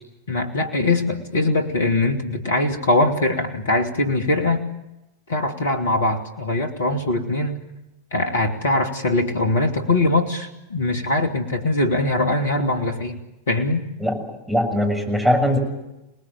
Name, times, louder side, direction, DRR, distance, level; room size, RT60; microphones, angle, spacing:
voice 1, 0.3-4.6 5.3-7.6 8.1-13.2 13.5-13.9, left 2 dB, 65° left, 4 dB, 2.6 m, -22 dB
voice 2, 14.5-15.6, equal, 5° right, 2 dB, 7.0 m, -20 dB
29.0 x 19.5 x 8.8 m, 0.95 s
figure-of-eight pair, 90°, 0 cm